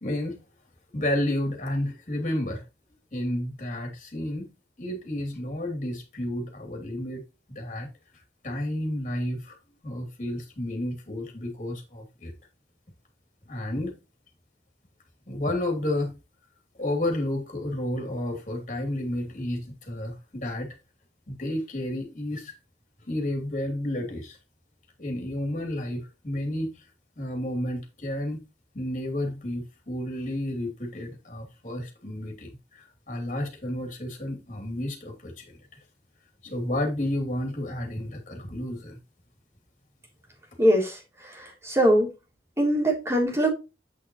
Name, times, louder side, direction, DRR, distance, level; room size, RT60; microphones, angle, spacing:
voice 1, 0.0-0.4 0.9-2.6 3.1-4.5 4.8-7.2 7.5-7.9 8.4-9.5 9.8-12.3 13.5-13.9 15.3-16.1 16.8-20.7 21.3-22.5 23.1-24.4 25.0-26.7 27.2-28.4 28.7-35.6 36.4-39.0, left 1 dB, 45° left, 2.9 m, -31 dB
voice 2, 40.6-42.1 42.6-43.5, equal, 15° right, 3.4 m, -22 dB
8.4 x 6.0 x 3.0 m
head